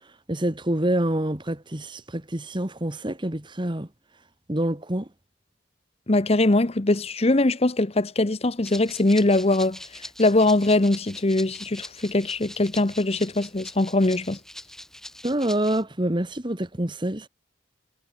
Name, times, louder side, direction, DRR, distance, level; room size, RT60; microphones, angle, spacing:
voice 1, 0.3-3.9 4.5-5.1 15.2-17.3, right 1 dB, 25° right, 1.7 m, -26 dB
voice 2, 6.1-14.4, left 2 dB, 30° left, 0.9 m, -22 dB
Rattle (instrument), 8.6-15.8, left 1 dB, ahead, 1.4 m, -42 dB
head